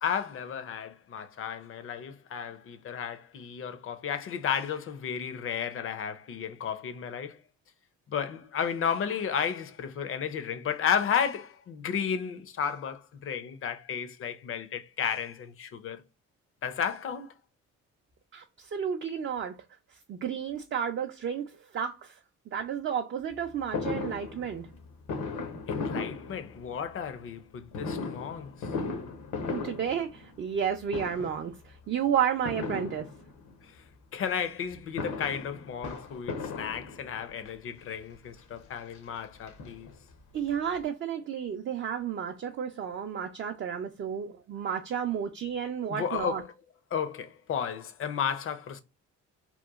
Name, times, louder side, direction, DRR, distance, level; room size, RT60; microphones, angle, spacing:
voice 1, 0.0-7.4 8.1-16.0 16.6-17.3 25.7-28.7 34.1-39.9 45.9-46.4 46.9-48.8, left 7 dB, 45° left, 0.5 m, -33 dB
voice 2, 18.3-19.6 20.1-22.1 22.5-24.7 29.5-33.1 40.3-46.4, right 8 dB, 40° right, 0.4 m, -32 dB
Fireworks, 23.7-26.9 27.7-30.6 30.9-31.5 32.4-33.5 34.7-37.3 38.1-38.2 38.5-38.6 38.9-40.2 40.5-40.6 40.8-40.9, left 4 dB, 80° left, 0.7 m, -36 dB
2.9 x 2.1 x 2.3 m
cardioid pair, 90°, 30 cm